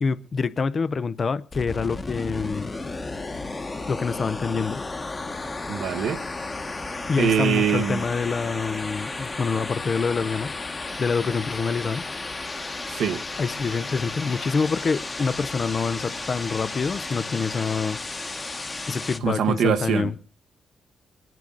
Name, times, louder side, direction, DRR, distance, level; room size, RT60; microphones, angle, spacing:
voice 1, 0.0-2.7 3.9-4.8 7.1-10.5 11.0-12.0 13.4-18.0 18.9-20.2, left 5 dB, 45° left, 0.6 m, -26 dB
sound 1, 1.5-19.2, left 3 dB, 25° left, 1.2 m, -33 dB
voice 2, 5.7-6.2 7.2-8.0 12.9-13.2 19.2-20.1, right 8 dB, 85° right, 1.1 m, -23 dB
25.0 x 10.5 x 3.9 m
cardioid pair, 95°, 0 cm